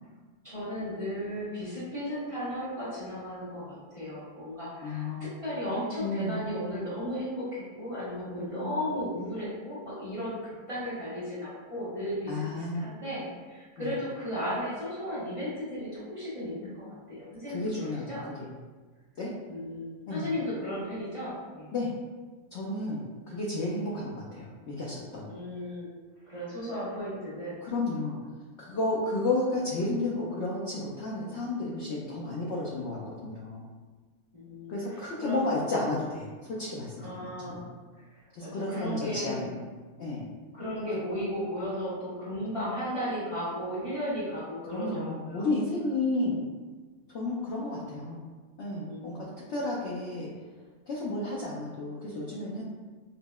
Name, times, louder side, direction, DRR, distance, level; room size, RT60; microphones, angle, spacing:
voice 1, 0.4-16.8 17.1-18.3 19.5-21.7 23.1-23.2 25.3-25.9 26.3-27.6 34.3-35.4 37.0-37.7 38.4-39.5 40.5-45.5 48.9-49.4, equal, 25° right, -10 dB, 0.9 m, -35 dB
voice 2, 4.8-5.3 6.0-6.4 8.4-8.7 12.3-12.9 13.8-13.9 17.5-18.5 19.2-19.3 20.1-20.3 21.7-21.9 22.5-25.3 27.6-28.2 28.6-33.6 34.7-37.6 38.3-39.6 40.0-40.3 44.7-46.4 47.1-48.2 48.6-50.3 50.9-52.6, left 2 dB, 65° left, -5 dB, 0.7 m, -32 dB
5.4 x 2.0 x 2.3 m, 1.4 s
omnidirectional pair, 1.7 m